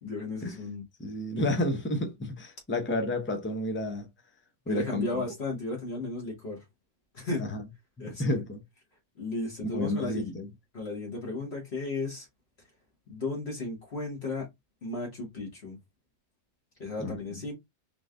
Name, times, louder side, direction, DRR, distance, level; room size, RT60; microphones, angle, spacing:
voice 1, 0.0-0.8 4.7-6.6 7.1-7.5 8.0-8.4 9.2-10.3 10.7-12.3 13.1-14.5 14.8-15.8 16.8-17.5, left 2 dB, 50° left, 1.7 m, -34 dB
voice 2, 1.0-4.1 4.7-5.2 7.4-7.6 8.0-8.6 9.7-10.5 17.0-17.4, left 1 dB, 15° left, 0.4 m, -31 dB
3.9 x 3.3 x 2.4 m
omnidirectional pair, 1.4 m